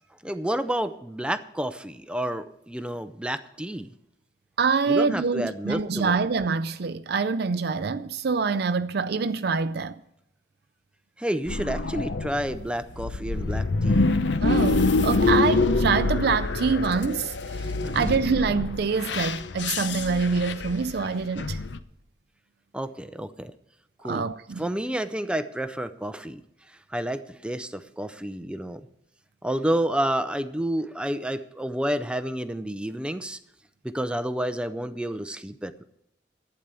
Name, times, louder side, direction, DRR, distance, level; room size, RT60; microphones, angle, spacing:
voice 1, 0.2-3.9 4.9-6.2 11.2-14.2 17.8-18.1 22.7-23.5 24.0-24.2 24.6-26.4 26.7-28.8 29.4-33.4 33.8-35.8, right 1 dB, 5° right, 0.5 m, -30 dB
voice 2, 4.6-9.9 14.4-17.3 17.9-21.6 24.0-24.6, right 5 dB, 60° right, 0.5 m, -25 dB
sound 1, 11.5-21.8, left 3 dB, 80° left, 0.7 m, -26 dB
12.0 x 8.9 x 6.9 m
head